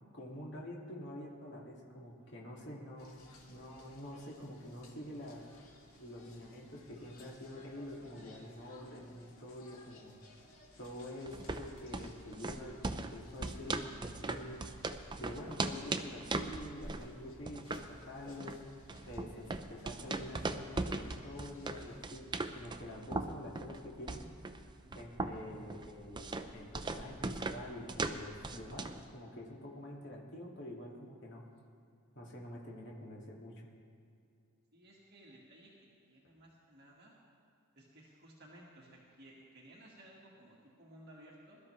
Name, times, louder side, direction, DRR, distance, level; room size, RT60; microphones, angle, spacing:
voice 1, 0.1-3.2 3.5-5.5 6.0-10.2 10.8-14.6 15.2-18.6 19.1-22.3 22.5-24.3 24.9-31.4 32.1-33.7, left 1 dB, 55° left, -3 dB, 2.3 m, -47 dB
sound 1, 3.0-22.0, left 1 dB, 80° left, 2.1 m, -61 dB
sound 2, 11.3-29.1, right 3 dB, 20° right, 0.4 m, -40 dB
voice 2, 34.7-37.1 37.7-41.6, right 1 dB, 50° right, -4 dB, 1.8 m, -58 dB
21.5 x 12.5 x 3.3 m, 2.5 s
head